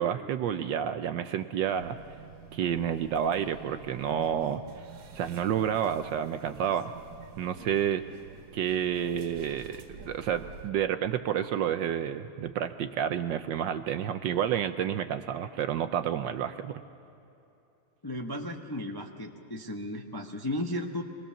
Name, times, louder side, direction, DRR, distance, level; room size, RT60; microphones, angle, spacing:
voice 1, 0.0-2.0 2.5-4.6 5.1-6.9 7.4-8.0 8.5-16.8, right 9 dB, 70° right, 9 dB, 1.2 m, -30 dB
sound 1, 1.7-10.7, right 5 dB, 90° right, 2.4 m, -48 dB
voice 2, 18.0-21.0, left 1 dB, 20° left, 1 dB, 0.6 m, -35 dB
24.5 x 19.5 x 7.0 m, 2.9 s
omnidirectional pair, 2.4 m